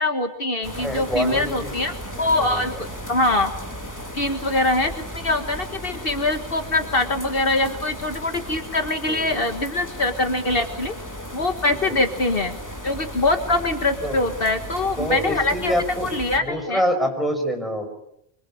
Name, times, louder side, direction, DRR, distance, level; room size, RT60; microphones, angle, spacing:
voice 1, 0.0-3.5 4.1-10.9 11.3-12.6 12.8-15.7 16.0-16.9, left 2 dB, 60° left, 6 dB, 1.8 m, -23 dB
sound 1, 0.6-16.4, equal, 15° left, 2.8 m, -35 dB
voice 2, 0.8-1.7 2.1-2.8 9.0-9.3 11.9-12.0 14.0-14.2 15.0-16.1 16.4-17.9, equal, ahead, 3 dB, 5.2 m, -26 dB
26.0 x 24.5 x 8.5 m, 0.78 s
omnidirectional pair, 1.1 m